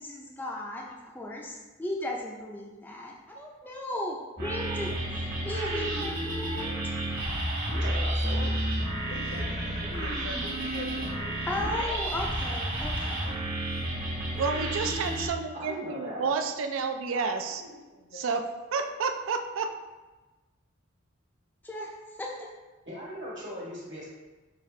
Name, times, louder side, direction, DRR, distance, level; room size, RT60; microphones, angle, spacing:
voice 1, 0.0-4.9 5.4-6.9 11.5-13.3 21.6-21.9 22.2-22.5, left 1 dB, 10° left, -2 dB, 0.4 m, -36 dB
sound 1, 4.4-15.3, right 1 dB, 45° right, 1.2 m, -31 dB
voice 2, 5.7-6.2 8.3-8.6 9.0-11.4 17.1-18.2, left 1 dB, 75° left, -1 dB, 0.8 m, -44 dB
voice 3, 7.7-8.5 15.5-16.3 22.8-24.0, equal, 65° right, -8 dB, 1.4 m, -39 dB
voice 4, 14.4-17.6 18.1-18.5 18.7-19.7, right 5 dB, 85° right, 6 dB, 0.4 m, -30 dB
5.9 x 2.4 x 3.2 m, 1.2 s
head